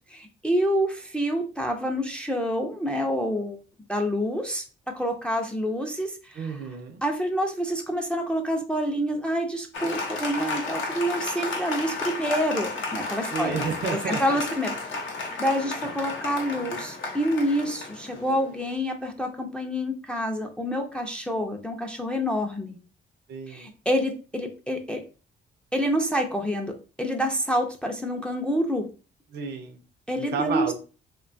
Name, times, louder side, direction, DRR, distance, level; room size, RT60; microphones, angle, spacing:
voice 1, 0.1-3.6 3.9-6.6 7.0-14.7 15.4-22.8 23.5-25.0 25.7-26.7 27.0-28.9 30.1-30.7, equal, 5° left, 3 dB, 0.4 m, -27 dB
voice 2, 6.3-7.0 13.3-14.4 23.3-23.7 29.3-29.8 30.2-30.7, right 5 dB, 55° right, 4 dB, 0.5 m, -31 dB
Applause, 9.7-18.7, left 3 dB, 75° left, 0.7 m, -33 dB
2.7 x 2.2 x 2.5 m, 0.34 s
cardioid pair, 90°, 20 cm